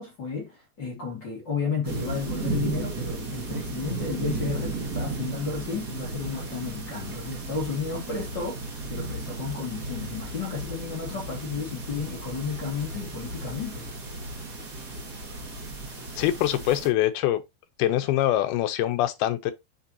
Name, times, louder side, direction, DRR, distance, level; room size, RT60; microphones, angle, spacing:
voice 1, 0.0-8.6 8.9-13.9, left 5 dB, 35° left, 2.4 m, -33 dB
sound 1, 1.8-16.9, right 3 dB, 40° right, 1.5 m, -34 dB
voice 2, 16.2-17.4 17.8-19.5, left 13 dB, 85° left, 2.7 m, -24 dB
7.9 x 5.4 x 2.8 m
omnidirectional pair, 4.4 m